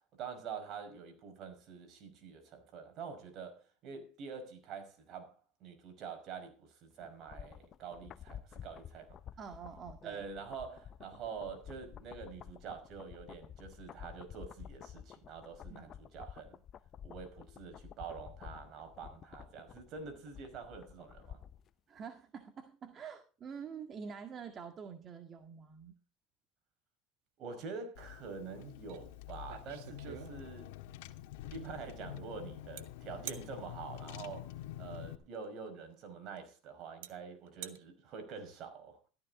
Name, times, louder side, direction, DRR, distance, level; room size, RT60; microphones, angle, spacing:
voice 1, 0.1-9.2 10.0-16.6 17.0-21.4 27.4-30.7 31.5-39.0, right 5 dB, 50° right, 5.3 m, -46 dB
sound 1, 7.0-21.7 22.0-22.1, left 9 dB, 40° left, 0.7 m, -51 dB
voice 2, 9.4-10.2 15.7-15.9 21.9-26.0, right 6 dB, 35° right, 1.8 m, -47 dB
Car / Engine, 27.9-35.1, left 13 dB, 85° left, 1.5 m, -47 dB
sound 2, 28.9-29.0 29.3-30.8 32.8-32.9 33.3-33.5 35.3-35.5 36.4-36.5 37.0-37.1 37.5-37.8, right 12 dB, 85° right, 1.7 m, -46 dB
14.0 x 14.0 x 3.8 m
supercardioid pair, 115°, 0 cm